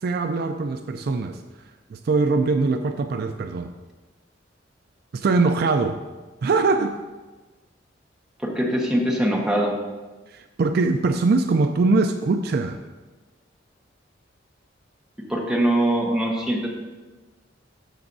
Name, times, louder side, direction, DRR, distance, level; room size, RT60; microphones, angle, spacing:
voice 1, 0.0-1.4 1.9-3.7 5.1-6.0 6.4-7.0 10.3-12.8, right 3 dB, 55° right, 7 dB, 0.4 m, -22 dB
voice 2, 8.4-9.8 15.3-16.7, right 1 dB, 5° right, -3 dB, 1.2 m, -22 dB
13.0 x 6.2 x 2.6 m, 1.3 s
head